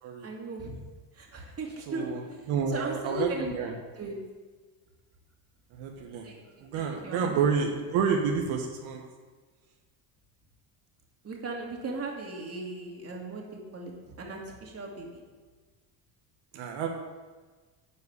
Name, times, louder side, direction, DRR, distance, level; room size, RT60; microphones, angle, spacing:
voice 1, 0.2-0.8 1.1-3.5 4.0-4.2 6.2-6.5 6.7-7.6 11.2-15.2, right 2 dB, 30° right, 0 dB, 2.4 m, -37 dB
voice 2, 1.9-2.2 2.5-3.7 5.7-6.3 6.6-9.0 16.5-16.9, right 6 dB, 70° right, 1 dB, 1.5 m, -29 dB
11.0 x 4.7 x 8.2 m, 1.4 s
cardioid pair, 115°, 49 cm